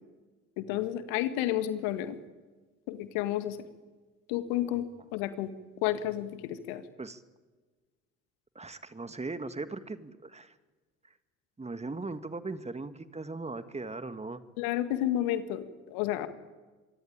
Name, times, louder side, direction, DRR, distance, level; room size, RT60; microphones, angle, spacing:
voice 1, 0.6-2.2 2.9-3.6 4.3-4.9 5.1-5.5 5.8-6.8 14.6-16.3, left 13 dB, 65° left, 10 dB, 2.0 m, -31 dB
voice 2, 8.6-10.5 11.6-14.4, right 3 dB, 15° right, 11 dB, 1.9 m, -38 dB
25.5 x 24.0 x 8.9 m, 1.3 s
figure-of-eight pair, 55°, 38 cm